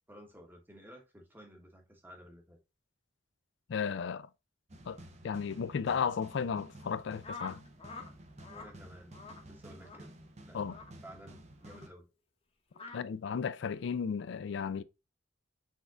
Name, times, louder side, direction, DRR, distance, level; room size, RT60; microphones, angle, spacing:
voice 1, 0.1-2.6 8.5-10.1 10.5-12.1, equal, 10° right, 1.0 m, -54 dB
voice 2, 3.7-4.3 4.9-5.0 5.2-7.6 10.5-10.8 12.9-14.8, left 6 dB, 60° left, 0.3 m, -34 dB
sound 1, 4.7-11.9, right 1 dB, 35° right, 0.7 m, -52 dB
sound 2, 7.2-8.1 8.4-8.7 9.1-9.4 9.8-10.0 10.7-10.9 11.6-11.8 12.7-13.0, left 4 dB, 30° left, 0.9 m, -46 dB
6.3 x 3.6 x 2.3 m
head